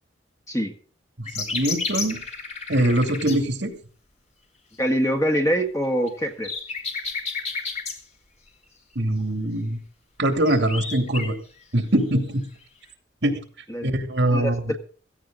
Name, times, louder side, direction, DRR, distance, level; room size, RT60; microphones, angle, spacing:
sound 1, 1.3-3.4 6.1-8.0 10.3-11.3 12.6-12.7, left 4 dB, 35° left, 3.0 m, -31 dB
voice 1, 1.4-2.2 2.7-3.7 9.0-9.8 10.2-11.3 11.7-12.4 13.2-13.3 13.8-14.6, right 1 dB, 65° right, 6 dB, 2.6 m, -22 dB
voice 2, 4.8-6.5 13.7-13.9 14.3-14.8, equal, 15° left, 5 dB, 1.6 m, -24 dB
16.5 x 15.0 x 3.9 m, 0.41 s
head